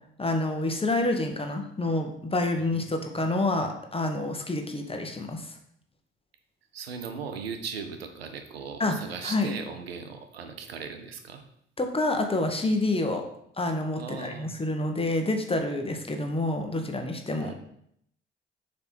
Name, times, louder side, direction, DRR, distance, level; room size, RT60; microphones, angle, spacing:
voice 1, 0.2-5.5 8.8-9.0 9.2-9.5 11.8-13.2 13.6-17.5, left 2 dB, 20° left, 4 dB, 1.2 m, -28 dB
voice 2, 2.6-3.0 6.7-11.4 14.0-14.6 17.4-17.5, right 6 dB, 90° right, 7 dB, 0.6 m, -38 dB
6.7 x 3.3 x 4.5 m, 0.71 s
hypercardioid pair, 45°, 29 cm